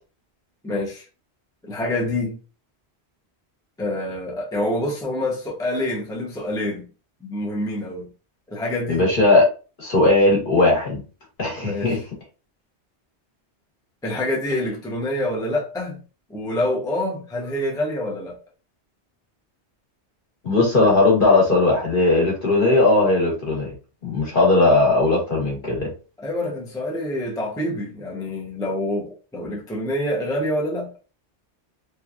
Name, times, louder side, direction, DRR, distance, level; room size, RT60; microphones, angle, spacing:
voice 1, 0.6-1.1 1.6-2.4 3.8-6.9 7.2-8.1 8.5-9.1 11.6-12.0 14.0-16.0 16.3-18.4 26.2-30.9, left 1 dB, 5° left, 0.5 m, -26 dB
voice 2, 8.9-9.5 9.8-11.0 11.4-12.0 20.4-23.7 24.0-25.9, left 2 dB, 50° left, 1.3 m, -18 dB
3.0 x 2.4 x 2.3 m
omnidirectional pair, 1.1 m